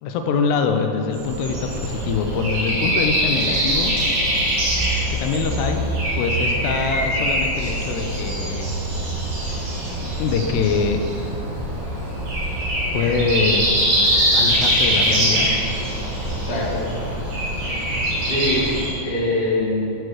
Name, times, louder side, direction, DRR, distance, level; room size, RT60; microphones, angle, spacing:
voice 1, 0.0-3.9 5.1-5.8 6.2-8.7 10.2-11.0 12.9-13.7 14.3-15.5, left 5 dB, 80° left, 5 dB, 2.7 m, -24 dB
Breathing, 1.1-18.9, right 1 dB, 80° right, 4.6 m, -23 dB
voice 2, 16.3-16.9 18.2-18.7 19.0-20.0, left 2 dB, 60° left, -7 dB, 0.7 m, -23 dB
10.5 x 6.2 x 4.7 m, 2.7 s
omnidirectional pair, 4.9 m